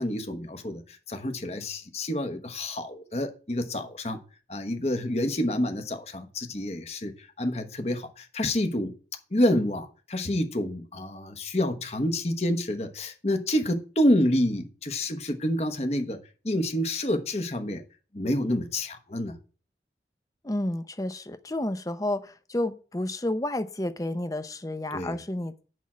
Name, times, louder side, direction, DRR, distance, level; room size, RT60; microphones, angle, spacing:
voice 1, 0.0-4.2 4.5-8.9 9.3-16.2 16.4-17.8 18.1-19.4 24.9-25.2, left 1 dB, 35° left, 1.1 m, -28 dB
voice 2, 20.4-25.6, left 1 dB, 20° left, 0.7 m, -31 dB
11.0 x 3.6 x 7.4 m
head